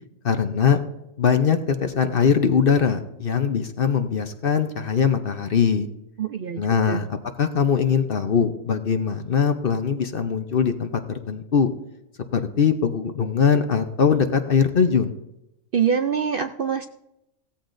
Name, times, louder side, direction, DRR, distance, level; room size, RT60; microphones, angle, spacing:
voice 1, 0.2-0.8 1.2-5.9 6.6-11.0 11.3-11.7 12.3-15.1, left 6 dB, 50° left, 8 dB, 0.9 m, -21 dB
voice 2, 6.2-6.6 6.9-7.0 15.7-16.9, right 7 dB, 60° right, 7 dB, 0.6 m, -24 dB
16.5 x 14.5 x 2.6 m, 0.88 s
omnidirectional pair, 1.4 m